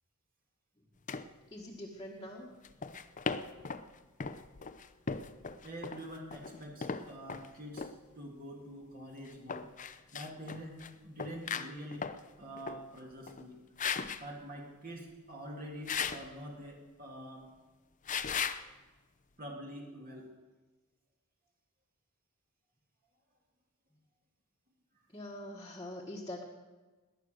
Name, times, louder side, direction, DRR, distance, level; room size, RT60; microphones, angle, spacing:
sound 1, 1.1-1.3 2.6-3.8 4.2-7.5 7.8-7.9 9.3-10.9 11.2-12.2 12.6-12.8 13.3-13.5 13.8-14.2 15.9-16.3 18.1-18.6, left 6 dB, 35° left, 0.7 m, -37 dB
voice 1, 1.5-2.5 25.1-26.4, left 1 dB, 20° left, -3 dB, 1.5 m, -44 dB
voice 2, 5.6-7.9 8.2-9.7 10.1-12.1 12.4-13.6 14.2-17.5 19.4-20.3, equal, 40° right, -1 dB, 2.3 m, -46 dB
18.5 x 11.0 x 6.4 m, 1.3 s
head